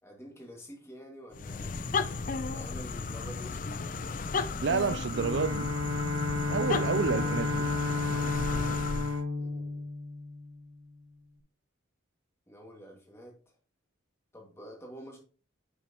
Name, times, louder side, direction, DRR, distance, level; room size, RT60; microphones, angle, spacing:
voice 1, 0.0-3.8 9.4-9.8 12.5-13.4 14.3-15.2, equal, 15° left, 2.1 m, -48 dB
sound 1, 1.3-9.2, left 4 dB, 40° left, 0.5 m, -34 dB
voice 2, 4.6-5.7 6.5-7.5, right 5 dB, 60° right, 0.4 m, -29 dB
Bowed string instrument, 5.1-10.7, left 3 dB, 80° right, 1.1 m, -32 dB
9.9 x 6.2 x 3.0 m
head